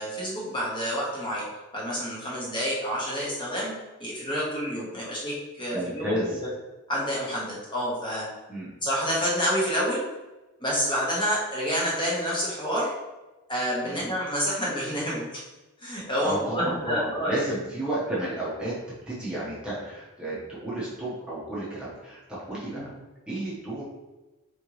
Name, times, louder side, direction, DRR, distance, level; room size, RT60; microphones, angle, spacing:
voice 1, 0.0-1.4 1.7-3.7 4.0-6.5 6.9-8.3 8.8-10.0 10.6-12.9 13.5-15.4 15.8-17.4 22.7-22.9, equal, 20° left, -6 dB, 1.2 m, -28 dB
voice 2, 5.7-6.4 8.5-8.7 13.8-14.1 16.2-18.7 19.1-22.9 23.3-23.8, right 1 dB, 5° right, -9 dB, 0.9 m, -32 dB
4.4 x 3.8 x 3.1 m, 1.1 s
head